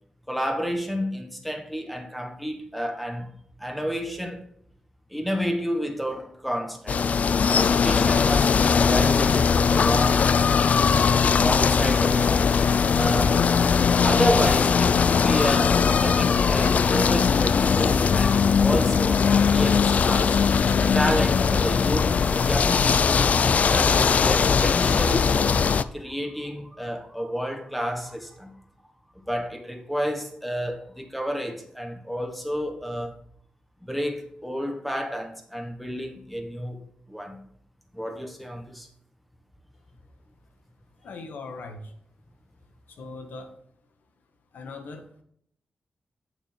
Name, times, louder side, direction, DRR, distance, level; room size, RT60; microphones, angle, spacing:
voice 1, 0.3-3.3 3.6-4.4 5.1-7.0 7.6-10.8 11.4-12.5 12.9-13.4 14.0-20.4 20.8-23.3 23.7-25.6 25.9-28.5 29.3-33.1 33.8-36.8 37.1-37.4 37.9-38.9, equal, ahead, 1.3 m, -30 dB
sound 1, 6.9-25.8, left 6 dB, 55° left, 0.4 m, -20 dB
voice 2, 41.0-41.9 42.9-43.6 44.5-45.2, left 3 dB, 85° left, 1.5 m, -40 dB
8.9 x 6.8 x 4.4 m
wide cardioid pair, 135°, 3 cm